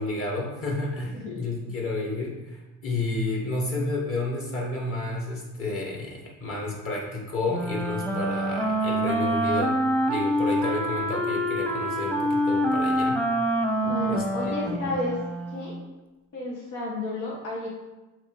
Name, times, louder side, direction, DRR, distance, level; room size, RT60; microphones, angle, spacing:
voice 1, 0.0-9.7 10.1-13.2 14.0-14.9, left 2 dB, 45° left, -2 dB, 2.2 m, -31 dB
voice 2, 1.1-1.7 13.8-15.2 15.5-15.8 16.3-17.7, left 2 dB, 85° left, -4 dB, 1.7 m, -32 dB
Wind instrument woodwind instrument, 7.5-15.7, equal, 5° left, 0.8 m, -26 dB
7.1 x 3.2 x 4.9 m, 1.1 s
cardioid pair, 90°, 30 cm